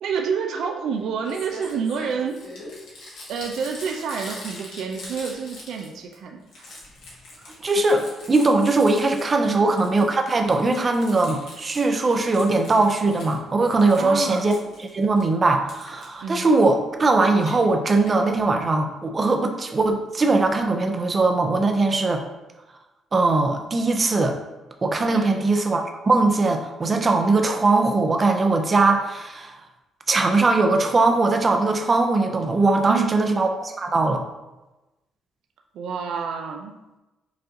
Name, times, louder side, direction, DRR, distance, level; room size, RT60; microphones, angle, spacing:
voice 1, 0.0-2.4 3.3-6.7 9.4-9.7 14.0-14.4 16.2-16.5 25.1-25.4 32.9-33.2 35.7-36.8, right 6 dB, 75° right, 2 dB, 0.4 m, -29 dB
Crumpling crinkling, 0.9-1.0 1.2-6.1 6.4-9.5 9.8-13.4 13.7-15.2 15.7-16.1 17.2-17.5 18.1-18.2 18.4-18.5 18.7-18.8, left 2 dB, 75° left, 1.4 m, -42 dB
voice 2, 7.6-22.2 23.1-24.4 24.8-29.6 30.1-34.2, right 3 dB, 35° right, 5 dB, 0.6 m, -20 dB
5.8 x 2.5 x 2.9 m, 1.0 s
supercardioid pair, 75°, 0 cm